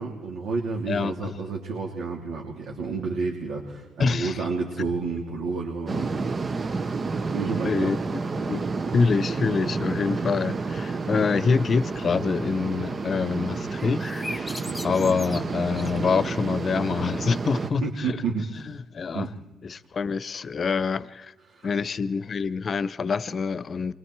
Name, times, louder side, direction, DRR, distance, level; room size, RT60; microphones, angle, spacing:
voice 1, 0.0-6.1 7.3-7.9 14.7-14.9 17.8-18.4 19.1-19.3 21.5-21.7, right 4 dB, 80° right, 3.1 m, -30 dB
voice 2, 0.9-1.4 4.0-4.4 7.6-8.6 8.9-18.2 18.7-19.3 19.6-21.3 21.6-23.9, left 5 dB, 45° left, 0.8 m, -26 dB
sound 1, 5.9-17.7, right 4 dB, 40° right, 0.8 m, -30 dB
sound 2, 13.8-16.5, left 2 dB, 15° left, 1.5 m, -39 dB
29.0 x 23.5 x 4.7 m
cardioid pair, 90°, 0 cm